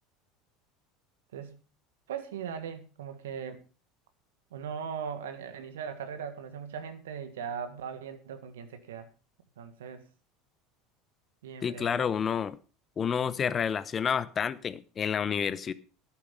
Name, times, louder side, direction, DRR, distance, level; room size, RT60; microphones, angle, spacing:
voice 1, 2.1-3.6 4.5-9.1 9.6-10.0 11.4-12.1, right 7 dB, 80° right, 1.6 m, -39 dB
voice 2, 11.6-12.6 13.0-15.7, left 7 dB, 35° left, 0.8 m, -29 dB
11.5 x 9.6 x 5.3 m
hypercardioid pair, 80°, 0 cm